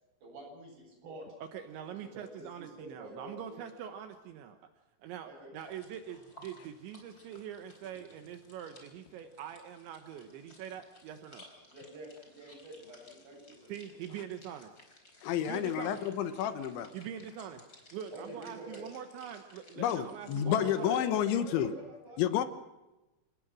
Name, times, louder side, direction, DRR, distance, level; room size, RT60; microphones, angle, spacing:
voice 1, 0.2-1.3 1.9-3.6 5.2-5.5 11.7-14.0 15.3-15.4 15.8-15.9 18.1-18.8 20.4-22.5, right 1 dB, 45° right, 0 dB, 9.7 m, -48 dB
voice 2, 1.5-4.6 5.0-11.4 13.7-14.8 15.4-16.0 16.9-17.7 17.9-21.0, right 9 dB, 75° right, 7 dB, 3.4 m, -44 dB
sound 1, 5.6-21.3, left 1 dB, 20° left, 4.2 m, -55 dB
voice 3, 15.2-16.9 19.8-21.7 22.2-22.4, left 10 dB, 75° left, 11 dB, 3.3 m, -30 dB
29.0 x 18.5 x 6.2 m, 1.0 s
omnidirectional pair, 5.5 m